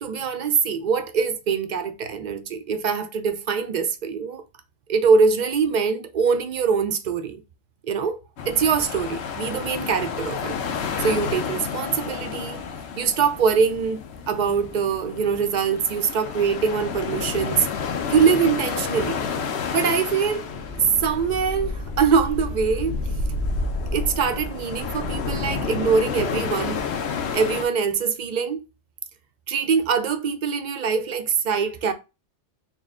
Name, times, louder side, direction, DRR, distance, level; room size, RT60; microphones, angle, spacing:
voice 1, 0.0-4.4 4.9-7.4 7.8-8.2 8.5-10.5 11.0-12.6 13.0-17.7 18.1-19.3 19.7-20.5 20.8-23.1 23.9-26.8 27.3-28.7 29.5-31.9, right 6 dB, 60° right, 0.5 m, -23 dB
sound 1, 8.4-27.7, left 5 dB, 70° left, 0.9 m, -30 dB
4.3 x 2.1 x 3.5 m
omnidirectional pair, 1.2 m